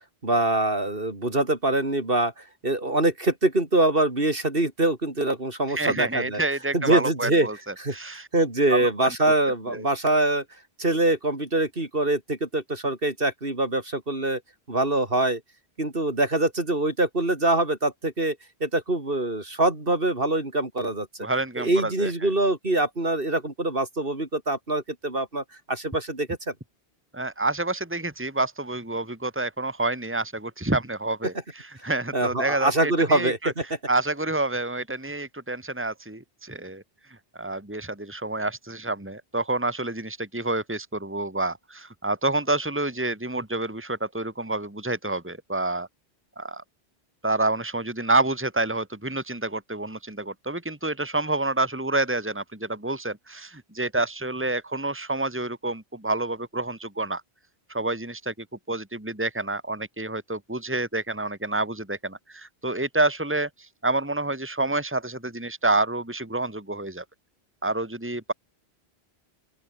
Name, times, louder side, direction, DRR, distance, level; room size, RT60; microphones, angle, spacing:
voice 1, 0.2-6.4 6.7-7.5 7.8-10.4 10.8-14.4 14.7-15.4 15.8-18.4 18.6-21.1 21.6-26.5 32.1-33.6, right 2 dB, 60° right, 4.3 m, -24 dB
voice 2, 5.7-8.3 8.7-9.1 9.7-9.9 21.2-22.1 27.1-33.5 33.9-36.8 37.4-45.9 46.4-46.6 47.2-57.2 57.7-58.3 58.7-67.0 67.6-68.3, right 2 dB, 10° right, 2.7 m, -28 dB
open air
omnidirectional pair, 1.1 m